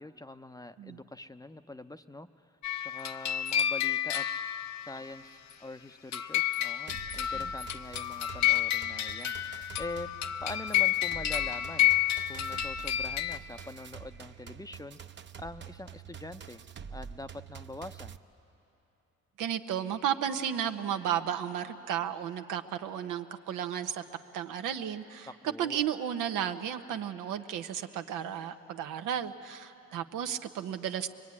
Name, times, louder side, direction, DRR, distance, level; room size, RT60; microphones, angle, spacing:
voice 1, 0.0-2.3 2.8-4.3 4.8-10.1 10.4-11.9 12.3-16.6 16.9-18.2 25.2-25.8, left 2 dB, 10° left, 10 dB, 0.6 m, -44 dB
sound 1, 2.6-5.0 6.1-13.4, left 12 dB, 65° left, 0.7 m, -30 dB
sound 2, 6.9-18.2, right 7 dB, 40° right, 0.8 m, -46 dB
voice 2, 19.4-24.0 24.3-31.1, right 9 dB, 90° right, 7 dB, 1.0 m, -33 dB
23.5 x 22.5 x 9.7 m, 3.0 s
cardioid pair, 90°, 30 cm